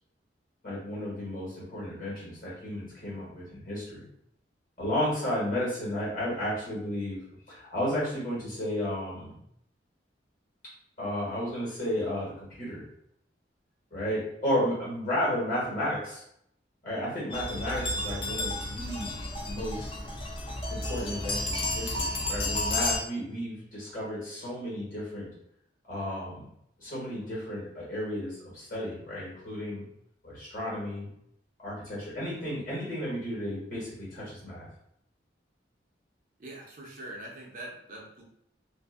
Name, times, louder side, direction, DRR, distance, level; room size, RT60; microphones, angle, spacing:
voice 1, 0.6-4.1 4.8-7.2 7.5-9.4 11.0-12.8 13.9-16.2 16.8-19.1 19.5-19.9 20.7-25.3 25.9-26.4 26.8-29.8 30.2-31.1 31.6-34.7, left 1 dB, 50° left, -7 dB, 1.3 m, -33 dB
sound 1, 17.3-23.0, left 2 dB, 30° left, 0.4 m, -32 dB
voice 2, 36.4-38.2, right 1 dB, 45° right, -2 dB, 0.5 m, -43 dB
2.5 x 2.5 x 2.4 m, 0.73 s
head